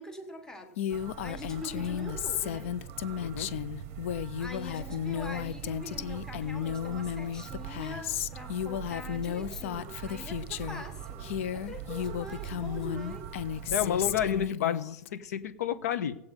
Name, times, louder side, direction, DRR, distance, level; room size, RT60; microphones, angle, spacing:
voice 1, 0.0-2.8 4.4-13.3, left 1 dB, 5° left, 5 dB, 1.3 m, -44 dB
Female speech woman speaking, 0.8-10.8 11.2-15.1, left 10 dB, 55° left, 0.5 m, -34 dB
sound 1, 0.9-14.5, right 10 dB, 30° right, 0.8 m, -42 dB
voice 2, 3.2-3.5 13.7-16.1, left 9 dB, 85° left, 10 dB, 1.2 m, -30 dB
16.5 x 8.0 x 5.3 m, 0.82 s
supercardioid pair, 165°, 8 cm